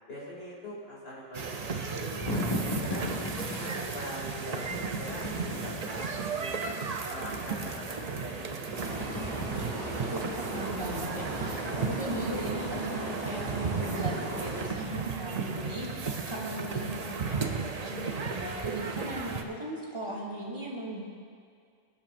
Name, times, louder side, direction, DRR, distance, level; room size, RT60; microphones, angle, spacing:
voice 1, 0.1-2.2 2.6-3.1 3.5-6.7 7.1-8.3 8.6-8.9, equal, 70° left, -6 dB, 2.9 m, -42 dB
sound 1, 1.3-19.4, right 5 dB, 45° right, 0.7 m, -35 dB
sound 2, 1.9-3.8 4.6-6.3 7.2-8.2 8.6-10.1 10.7-12.5, left 1 dB, 35° left, 1.7 m, -37 dB
sound 3, 8.7-14.7, right 1 dB, 60° right, 1.8 m, -37 dB
voice 2, 10.0-21.0, right 1 dB, 25° right, -6 dB, 2.2 m, -37 dB
21.5 x 8.9 x 2.6 m, 2.2 s
omnidirectional pair, 1.1 m